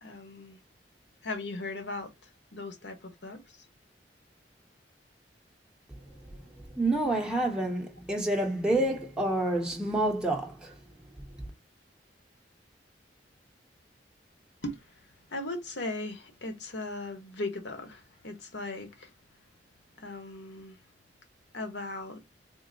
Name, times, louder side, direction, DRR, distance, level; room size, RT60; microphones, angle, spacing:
voice 1, 0.0-0.6 1.2-2.1 2.5-3.4 14.6-14.8 15.3-19.1 20.0-20.8 21.5-22.2, left 2 dB, 80° left, 1.0 m, -38 dB
voice 2, 6.7-10.7, right 1 dB, 5° right, 0.8 m, -28 dB
3.7 x 2.0 x 3.8 m
head